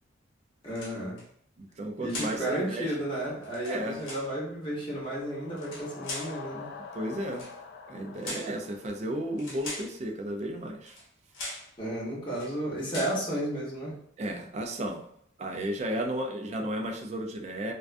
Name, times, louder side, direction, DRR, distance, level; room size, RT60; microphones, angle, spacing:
voice 1, 0.6-1.2 2.0-6.7 11.8-14.0, right 1 dB, 25° left, -6 dB, 0.8 m, -33 dB
sound 1, 0.7-1.2 2.1-2.4 3.4-4.3 5.5-6.4 7.3-7.6 8.2-8.6 9.4-10.0 10.8-11.1 11.3-11.7 12.3-12.5 12.9-13.2, left 2 dB, 90° left, 0.7 m, -40 dB
voice 2, 1.6-3.0 3.7-4.0 6.9-7.5 7.9-11.0 14.2-15.1 15.4-17.7, right 1 dB, 35° right, 3 dB, 0.3 m, -33 dB
sound 2, 4.8-9.7, left 5 dB, 60° left, 0.3 m, -46 dB
2.4 x 2.2 x 2.4 m, 0.66 s
head